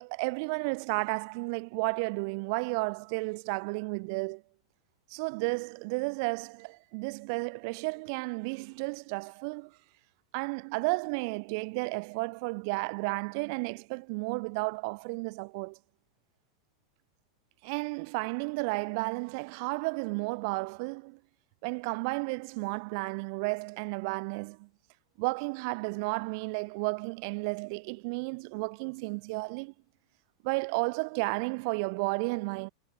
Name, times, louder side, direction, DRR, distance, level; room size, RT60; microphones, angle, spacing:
voice 1, 0.0-4.4 5.1-9.8 10.3-15.8 17.6-21.2 21.6-24.7 25.2-29.7 30.4-32.7, right 31 dB, 45° right, 0.4 m, -33 dB
supercardioid pair, 160°, 3 cm